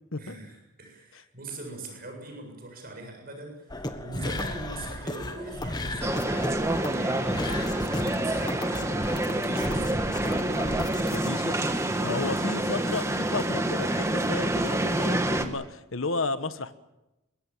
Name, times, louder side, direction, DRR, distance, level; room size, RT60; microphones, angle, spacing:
voice 1, 0.2-6.5 6.9-10.5 12.2-12.4, right 2 dB, 40° right, 3 dB, 7.5 m, -42 dB
sound 1, 3.7-11.3, left 1 dB, 20° left, 1.5 m, -34 dB
sound 2, 6.0-15.4, right 1 dB, 15° right, 1.7 m, -27 dB
voice 2, 11.0-11.5 12.0-16.7, left 3 dB, 65° left, 11 dB, 1.4 m, -33 dB
24.0 x 22.5 x 7.5 m, 0.96 s
head